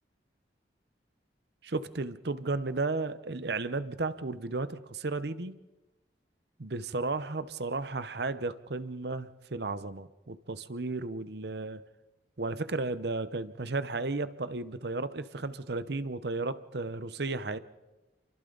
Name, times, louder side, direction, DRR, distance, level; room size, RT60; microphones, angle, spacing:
voice 1, 1.6-5.6 6.6-11.8 12.4-17.6, right 3 dB, 65° right, 14 dB, 0.8 m, -34 dB
30.0 x 24.0 x 4.0 m, 1.1 s
head